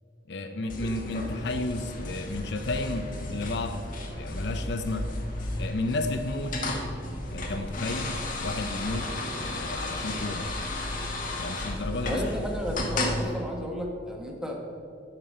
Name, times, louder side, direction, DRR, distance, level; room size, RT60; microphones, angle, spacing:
voice 1, 0.3-3.8 4.1-5.1 5.6-6.6 7.3-10.5 11.4-12.2, left 2 dB, 65° left, 8 dB, 0.6 m, -32 dB
sound 1, 0.7-13.2, left 2 dB, 45° left, 1.1 m, -34 dB
voice 2, 12.1-14.6, equal, 5° right, 0 dB, 1.0 m, -32 dB
8.1 x 6.0 x 6.4 m, 2.5 s
head